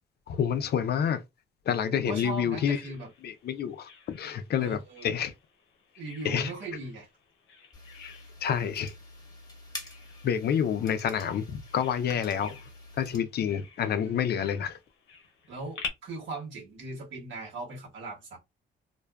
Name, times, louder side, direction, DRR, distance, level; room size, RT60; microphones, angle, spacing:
voice 1, 0.3-1.2 1.7-2.8 3.2-5.3 6.2-6.5 8.0-8.1 8.4-8.9 10.2-12.6 13.0-14.8, left 8 dB, 55° left, 0.4 m, -28 dB
voice 2, 1.9-3.1 4.6-5.1 6.0-7.1 14.0-14.4 15.5-18.4, right 2 dB, 70° right, 1.3 m, -39 dB
Bird vocalization bird call bird song, 2.3-15.9, left 5 dB, 90° left, 0.7 m, -48 dB
sound 1, 7.7-13.2, left 2 dB, 20° left, 1.0 m, -47 dB
2.5 x 2.2 x 2.3 m
cardioid pair, 90°, 20 cm